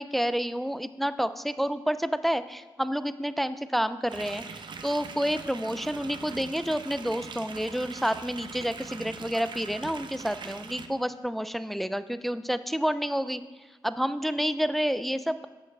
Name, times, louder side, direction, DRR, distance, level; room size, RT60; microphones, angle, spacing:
voice 1, 0.0-13.4 13.8-15.5, equal, ahead, 13 dB, 0.4 m, -29 dB
sound 1, 4.1-10.9, right 5 dB, 65° right, 0.6 m, -42 dB
9.2 x 6.3 x 3.3 m, 1.2 s
cardioid pair, 50°, 9 cm